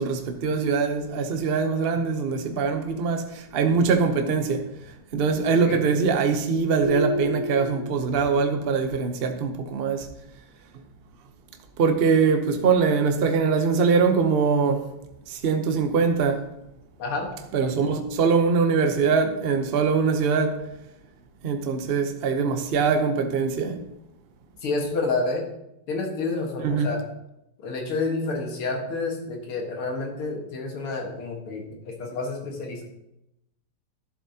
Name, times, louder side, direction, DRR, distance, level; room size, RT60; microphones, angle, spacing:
voice 1, 0.0-4.7 5.1-10.1 11.8-14.9 15.3-16.5 17.5-20.6 21.4-23.8 26.6-26.9, right 5 dB, 70° right, 0.5 m, -23 dB
voice 2, 5.4-5.8 17.0-17.3 24.6-25.5 25.9-27.0 27.6-32.8, left 3 dB, 85° left, 2.5 m, -29 dB
sound 1, 6.8-8.5, equal, 15° right, 1.6 m, -29 dB
12.0 x 7.4 x 2.8 m
omnidirectional pair, 2.3 m